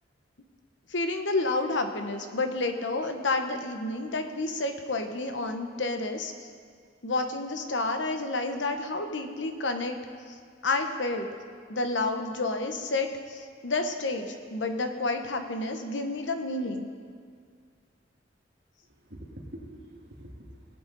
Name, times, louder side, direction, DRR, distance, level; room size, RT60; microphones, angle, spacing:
voice 1, 0.9-6.5 7.0-10.0 10.6-11.3 11.7-16.9, left 2 dB, 75° left, 6 dB, 1.0 m, -30 dB
voice 2, 18.8-20.8, right 1 dB, 60° right, -3 dB, 2.1 m, -45 dB
20.0 x 7.9 x 4.1 m, 2.1 s
head